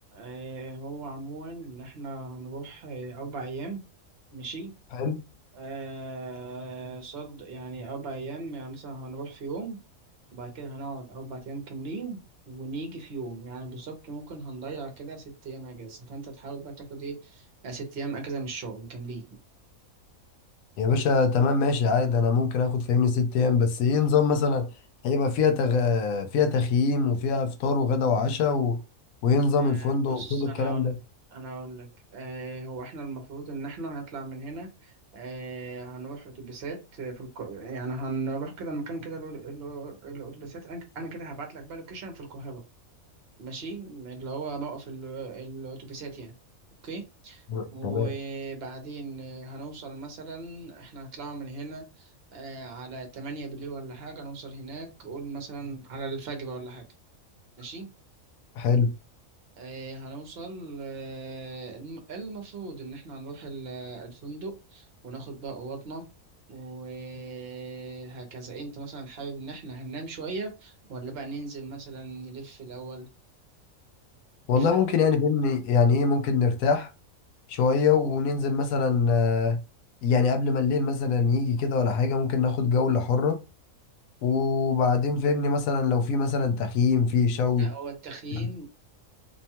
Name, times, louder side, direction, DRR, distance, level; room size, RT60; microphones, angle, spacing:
voice 1, 0.1-3.8 4.3-4.7 5.5-9.8 10.3-19.4 29.6-30.9 31.3-42.6 43.4-46.3 46.8-47.4 47.7-56.8 57.6-57.9 59.6-66.1 66.5-73.1 74.5-74.7 87.6-88.7, right 3 dB, 50° right, 1.0 m, -38 dB
voice 2, 20.8-24.7 25.0-28.8 29.2-30.9 47.5-48.1 58.6-58.9 74.5-76.9 77.5-79.6 80.0-83.4 84.2-87.7 88.3-88.5, left 5 dB, 85° left, 1.0 m, -23 dB
2.6 x 2.2 x 2.8 m
omnidirectional pair, 1.5 m